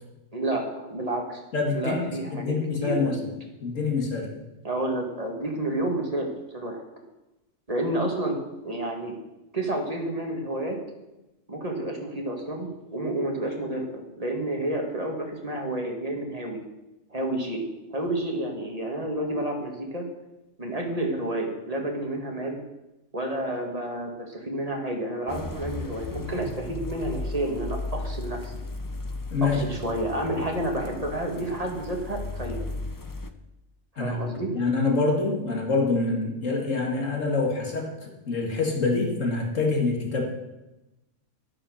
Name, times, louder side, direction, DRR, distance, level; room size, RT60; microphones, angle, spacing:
voice 1, 0.3-1.4 1.7-2.5 2.8-3.1 4.6-6.8 7.7-9.1 9.5-10.8 11.5-16.6 17.1-17.6 17.9-20.1 20.6-22.6 23.1-28.5 29.4-32.7 34.0-34.5, right 1 dB, 30° right, 1 dB, 2.0 m, -30 dB
voice 2, 1.5-3.2 3.6-4.3 29.3-29.6 34.0-40.2, left 3 dB, 90° left, 1 dB, 2.4 m, -26 dB
sound 1, 25.3-33.3, left 2 dB, 25° left, 0.4 m, -35 dB
11.0 x 8.9 x 6.4 m, 0.99 s
omnidirectional pair, 1.3 m